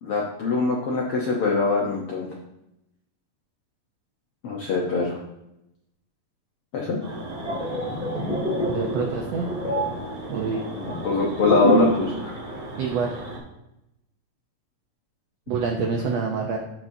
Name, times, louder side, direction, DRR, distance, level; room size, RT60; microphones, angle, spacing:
voice 1, 0.0-2.3 4.4-5.2 6.7-7.0 10.8-12.3, left 4 dB, 75° left, -3 dB, 1.3 m, -23 dB
sound 1, 7.0-13.4, right 2 dB, 35° right, 2.3 m, -37 dB
sound 2, 7.2-12.1 12.3-12.6, right 1 dB, ahead, 1.9 m, -27 dB
voice 2, 8.7-9.5 10.3-10.6 12.8-13.2 15.5-16.6, right 5 dB, 80° right, 1 dB, 1.4 m, -26 dB
13.5 x 4.6 x 2.7 m, 0.86 s
omnidirectional pair, 3.8 m